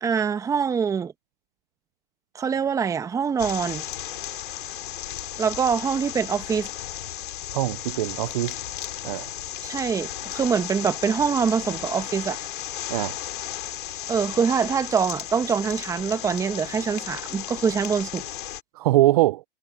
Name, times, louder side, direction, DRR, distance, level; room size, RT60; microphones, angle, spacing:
voice 1, 0.0-1.1 2.3-3.8 5.4-6.7 9.6-12.4 14.1-18.2, right 6 dB, 10° right, 1.4 m, -24 dB
sound 1, 3.4-18.6, left 13 dB, 60° left, 3.0 m, -35 dB
voice 2, 7.5-8.6 9.0-9.3 12.9-13.2 18.7-19.4, right 16 dB, 40° right, 0.5 m, -22 dB
hypercardioid pair, 140°, 29 cm